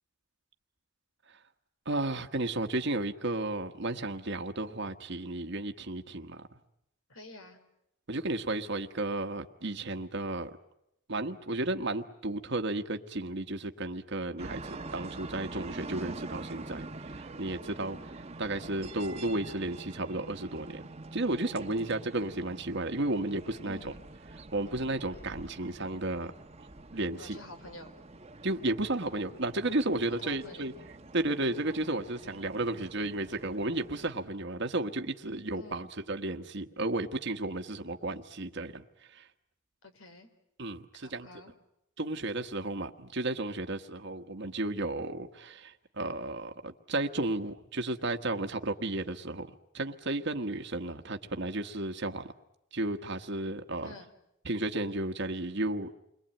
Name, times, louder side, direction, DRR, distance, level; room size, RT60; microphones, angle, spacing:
voice 1, 1.8-6.4 8.1-10.5 11.1-18.0 18.4-20.8 21.1-23.9 24.5-26.3 26.9-27.4 28.4-30.7 31.1-38.8 39.1-39.3 40.6-41.3 42.0-49.5 49.7-52.3 52.7-53.9 54.4-55.9, right 2 dB, 60° right, 6 dB, 1.4 m, -33 dB
voice 2, 7.1-7.6 21.6-22.0 23.6-23.9 27.2-27.9 30.2-30.7 31.2-31.5 35.5-35.9 39.8-40.3 41.0-41.5 53.8-54.1, left 2 dB, 80° left, 8 dB, 3.9 m, -49 dB
sound 1, 14.4-34.1, right 2 dB, 30° right, 1.2 m, -46 dB
29.5 x 22.5 x 9.0 m, 0.83 s
head